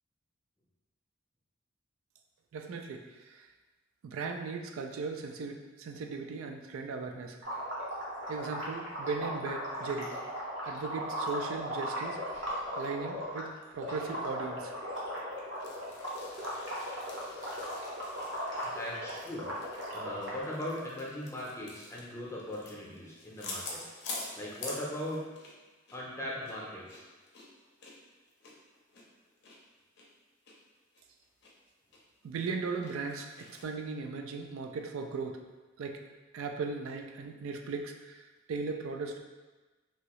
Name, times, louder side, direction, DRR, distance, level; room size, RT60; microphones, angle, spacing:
voice 1, 2.5-3.5 4.0-7.4 8.3-10.1 10.6-12.2 12.7-14.7 32.2-35.4 35.8-36.0 36.3-39.2, right 4 dB, 90° right, 4 dB, 0.3 m, -37 dB
sound 1, 7.4-13.4 13.8-20.4, equal, 60° right, 0.8 m, -37 dB
sound 2, 15.3-25.6 25.9-26.0 26.4-29.6 30.0-30.1 30.5-30.6 30.9-31.5 31.9-32.0 32.4-33.6, left 2 dB, 55° left, 0.5 m, -46 dB
voice 2, 18.6-19.4 19.9-23.8 24.4-25.2 25.9-27.0, left 1 dB, 15° left, -5 dB, 0.6 m, -39 dB
2.8 x 2.7 x 3.0 m, 1.2 s
head